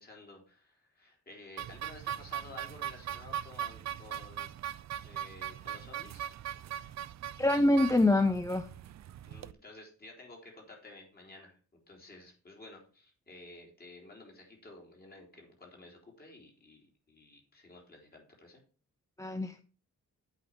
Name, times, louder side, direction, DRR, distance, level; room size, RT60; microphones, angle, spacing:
voice 1, 0.0-4.6 5.0-6.3 9.3-18.6, left 2 dB, 35° left, 0 dB, 3.8 m, -53 dB
sound 1, 1.6-9.5, right 10 dB, 65° right, 0.5 m, -40 dB
voice 2, 7.4-8.7 19.2-19.6, left 2 dB, 10° left, 8 dB, 0.6 m, -25 dB
8.2 x 5.4 x 7.3 m, 0.38 s
wide cardioid pair, 145°, 29 cm